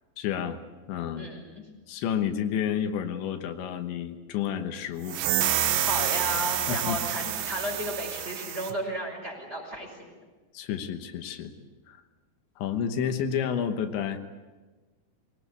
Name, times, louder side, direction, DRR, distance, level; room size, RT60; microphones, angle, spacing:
voice 1, 0.2-0.6 0.9-1.3 1.9-5.2 6.7-7.0 10.5-11.5 11.9-12.0 12.6-14.2, left 8 dB, 85° left, 7 dB, 3.6 m, -30 dB
sound 1, 5.1-8.7, right 11 dB, 85° right, 3.5 m, -28 dB
voice 2, 5.8-10.1, equal, 15° right, 0 dB, 5.0 m, -33 dB
23.0 x 18.5 x 8.3 m, 1.3 s
omnidirectional pair, 5.1 m